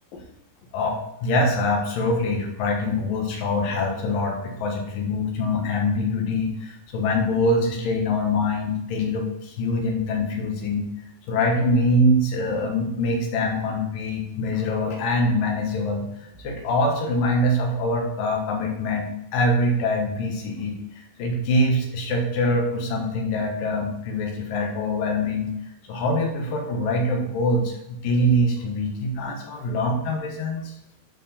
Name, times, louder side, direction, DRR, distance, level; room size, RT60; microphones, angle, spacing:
voice 1, 0.7-10.9 11.3-16.1 16.4-20.8 21.2-25.5 25.9-30.7, left 1 dB, 70° left, 2 dB, 3.0 m, -24 dB
11.5 x 4.6 x 4.2 m, 0.85 s
omnidirectional pair, 4.3 m